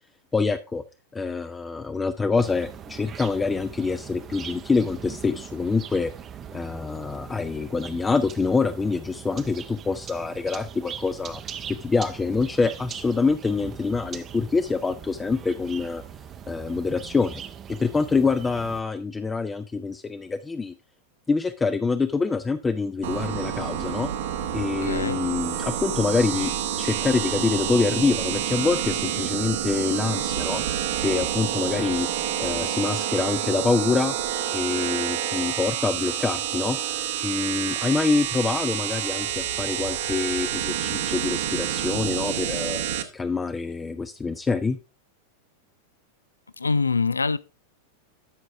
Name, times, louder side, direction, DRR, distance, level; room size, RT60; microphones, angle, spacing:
voice 1, 0.3-0.8 1.1-6.1 6.5-11.4 11.7-16.0 16.5-17.4 17.7-20.7 21.3-24.1 24.5-26.5 26.8-30.6 31.0-32.1 32.4-34.1 34.5-36.8 37.2-42.8 43.1-44.8, left 4 dB, 15° left, 0.5 m, -25 dB
sound 1, 2.4-18.8, right 8 dB, 25° right, 0.7 m, -41 dB
sound 2, 23.0-43.0, right 10 dB, 60° right, 1.0 m, -28 dB
voice 2, 24.8-25.2 46.6-47.4, left 4 dB, 80° left, 0.4 m, -24 dB
13.0 x 5.3 x 3.4 m
figure-of-eight pair, 90°, 0 cm